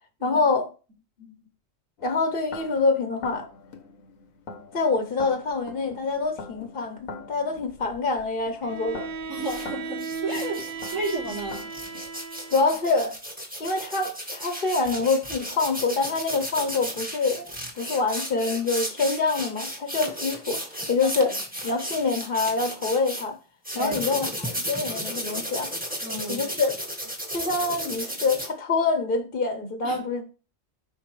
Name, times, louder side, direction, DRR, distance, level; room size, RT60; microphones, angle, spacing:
voice 1, 0.2-0.7 1.2-1.3 2.0-3.5 4.7-9.1 12.5-13.1 13.6-17.5 17.7-20.6 20.9-21.3 21.6-23.4 23.7-25.7 26.3-26.7 27.3-30.2, left 3 dB, 45° left, 1.1 m, -25 dB
sound 1, 2.0-12.1, left 4 dB, 85° left, 1.5 m, -44 dB
Bowed string instrument, 8.6-12.9, right 5 dB, 45° right, 0.8 m, -36 dB
voice 2, 9.3-11.6 21.0-21.1 23.7-24.0 26.0-26.5 29.8-30.0, right 1 dB, 80° right, 3.9 m, -32 dB
sound 2, 9.4-9.6 10.0-23.2 23.6-28.5, equal, 5° right, 1.8 m, -34 dB
8.3 x 5.5 x 3.2 m
omnidirectional pair, 1.4 m